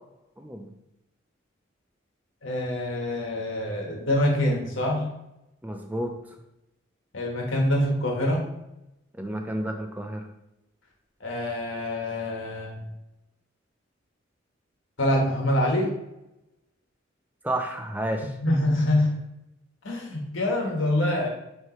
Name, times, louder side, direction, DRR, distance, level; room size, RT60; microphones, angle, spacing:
voice 1, 0.4-0.7 5.6-6.1 9.2-10.3 17.4-18.3, right 1 dB, 10° right, 4 dB, 0.5 m, -31 dB
voice 2, 2.4-5.1 7.1-8.5 11.2-12.8 15.0-15.9 18.4-19.1 19.8-21.3, left 1 dB, 80° left, 0 dB, 1.3 m, -25 dB
9.8 x 3.3 x 3.1 m, 0.89 s
head